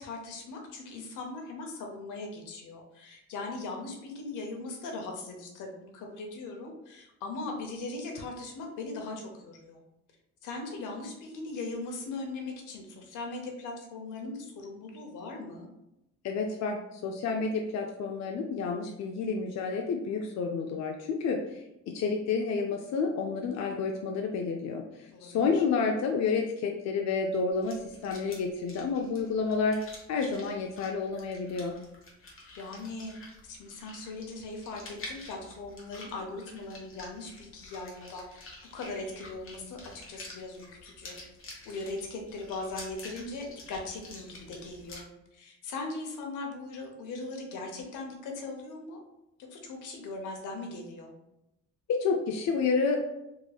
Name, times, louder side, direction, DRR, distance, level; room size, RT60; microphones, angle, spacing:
voice 1, 0.0-9.8 10.4-15.7 25.1-25.6 32.2-33.1 33.4-38.4 38.7-41.2 41.5-45.1 45.3-49.0 49.5-51.1, left 3 dB, 85° left, 2 dB, 0.9 m, -39 dB
voice 2, 16.2-29.8 30.1-31.7 51.9-53.0, left 5 dB, 60° left, 2 dB, 0.5 m, -30 dB
sound 1, 27.5-45.0, left 2 dB, 45° left, 1.2 m, -49 dB
3.7 x 3.2 x 2.3 m, 0.88 s
cardioid pair, 90°, 30 cm